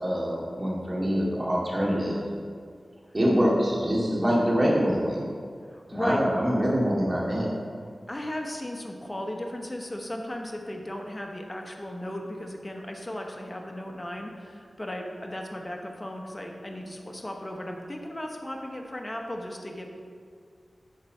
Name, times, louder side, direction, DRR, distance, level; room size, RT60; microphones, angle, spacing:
voice 1, 0.0-2.5 3.1-5.3 5.9-7.5, equal, 35° right, -4 dB, 2.2 m, -25 dB
voice 2, 5.7-6.2 8.1-19.9, left 1 dB, 25° left, 1 dB, 1.0 m, -36 dB
10.5 x 4.1 x 5.9 m, 2.1 s
cardioid pair, 50°, 0 cm